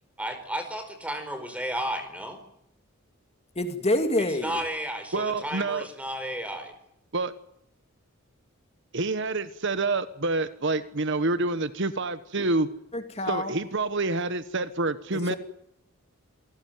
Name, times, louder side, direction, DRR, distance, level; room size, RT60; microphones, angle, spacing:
voice 1, 0.2-2.4 4.4-6.7, equal, 5° right, 8 dB, 4.7 m, -33 dB
voice 2, 3.6-4.5 12.9-13.5 15.3-15.4, left 1 dB, 30° left, 7 dB, 2.4 m, -26 dB
voice 3, 5.1-5.9 7.1-7.3 8.9-12.7 13.3-15.3, right 3 dB, 55° right, 13 dB, 1.2 m, -27 dB
27.5 x 17.5 x 9.4 m, 0.76 s
head